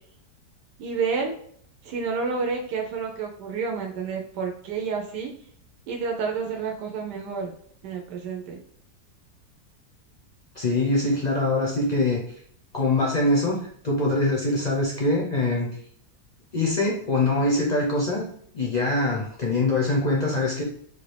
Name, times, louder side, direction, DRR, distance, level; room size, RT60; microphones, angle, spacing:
voice 1, 0.8-1.3 1.8-5.3 5.9-7.5 7.8-8.6, right 5 dB, 90° right, 2 dB, 1.2 m, -29 dB
voice 2, 10.6-12.2 12.7-13.6 13.8-15.7 16.5-18.3 18.5-20.6, left 2 dB, 60° left, -3 dB, 0.4 m, -23 dB
3.6 x 2.5 x 3.2 m, 0.62 s
omnidirectional pair, 1.7 m